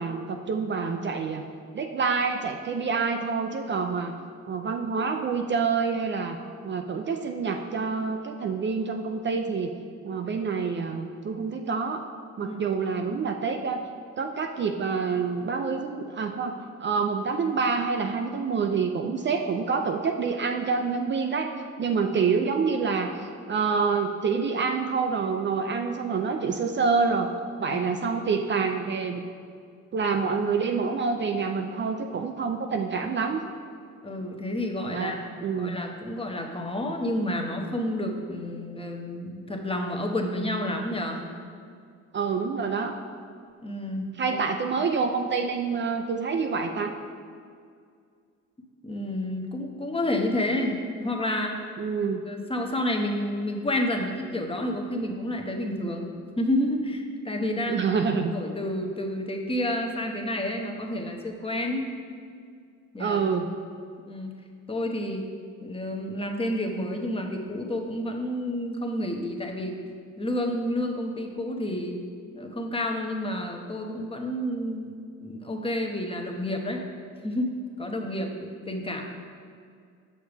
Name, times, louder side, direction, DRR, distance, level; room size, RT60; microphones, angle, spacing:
voice 1, 0.0-1.4 1.7-4.1 4.5-6.4 6.6-9.7 10.0-12.0 12.4-13.8 14.2-16.5 16.8-21.5 21.8-27.3 27.6-29.2 29.9-33.4 34.9-35.2 35.4-35.8 42.1-42.9 44.2-46.9 51.8-52.2 57.7-58.4 63.0-63.5, right 5 dB, 40° right, 4 dB, 0.4 m, -27 dB
voice 2, 27.6-28.1 34.0-35.3 35.6-41.2 43.6-44.4 48.8-51.6 52.3-56.1 56.4-57.9 58.3-61.9 62.9-63.2 64.1-64.3 64.7-65.2 65.6-69.7 70.2-72.0 72.3-76.9 77.2-79.0, left 1 dB, 20° left, 2 dB, 0.8 m, -30 dB
6.8 x 6.5 x 3.4 m, 2.2 s
cardioid pair, 90°, 30 cm